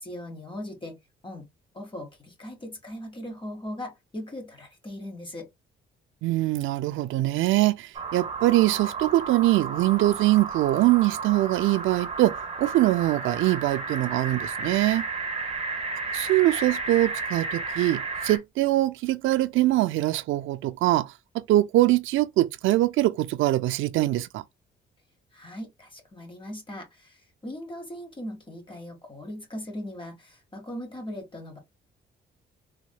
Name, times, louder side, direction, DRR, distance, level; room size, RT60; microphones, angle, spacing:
voice 1, 0.0-1.0 1.2-1.5 1.7-5.5 25.3-31.6, left 1 dB, 25° left, 1.7 m, -39 dB
voice 2, 6.2-15.0 16.1-24.4, right 16 dB, 80° right, 0.4 m, -23 dB
sound 1, 7.9-18.4, right 4 dB, 30° right, 1.1 m, -33 dB
3.5 x 3.1 x 2.2 m
cardioid pair, 90°, 20 cm